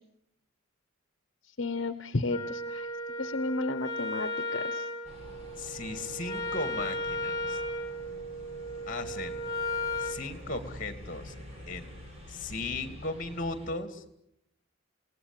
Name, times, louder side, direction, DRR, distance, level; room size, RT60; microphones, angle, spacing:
voice 1, 1.6-2.9 3.2-4.9, left 2 dB, 65° left, 12 dB, 1.1 m, -33 dB
Wind instrument woodwind instrument, 2.3-10.2, left 1 dB, 20° left, 2.4 m, -35 dB
sound 1, 5.0-13.7, equal, 30° right, 6.1 m, -47 dB
voice 2, 5.6-7.6 8.9-9.4 10.0-11.3 11.7-11.9 12.3-14.0, left 3 dB, 40° left, 11 dB, 2.7 m, -36 dB
28.0 x 18.5 x 9.0 m, 0.79 s
head